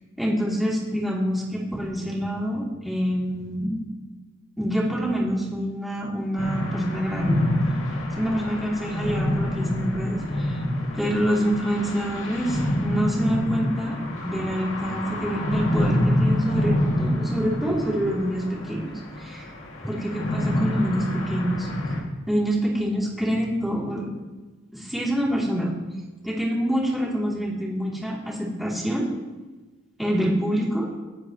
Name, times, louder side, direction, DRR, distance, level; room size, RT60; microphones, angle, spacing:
voice 1, 0.2-3.8 4.6-7.4 8.1-10.6 10.9-18.9 19.2-19.5 19.8-21.7 22.2-24.1 24.7-25.7 26.2-29.1 30.0-30.9, equal, ahead, -5 dB, 3.1 m, -26 dB
sound 1, 6.4-22.0, left 1 dB, 70° left, 2.5 m, -27 dB
25.5 x 9.5 x 3.1 m, 1.2 s
head